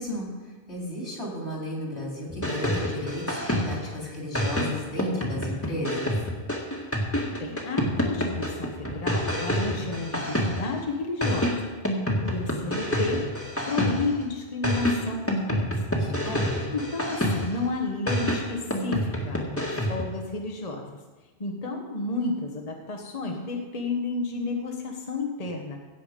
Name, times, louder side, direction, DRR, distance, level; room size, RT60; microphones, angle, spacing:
voice 1, 0.0-6.1 16.0-16.6, left 1 dB, 80° left, -2 dB, 3.7 m, -34 dB
sound 1, 2.3-3.9 4.3-10.8 11.2-14.2 14.6-17.6 18.1-20.1, equal, 10° left, 1.8 m, -28 dB
voice 2, 7.4-11.6 12.2-13.2 13.7-15.8 16.7-21.0 21.4-25.8, left 3 dB, 35° left, 2 dB, 1.2 m, -31 dB
16.5 x 7.1 x 5.1 m, 1.3 s
omnidirectional pair, 1.1 m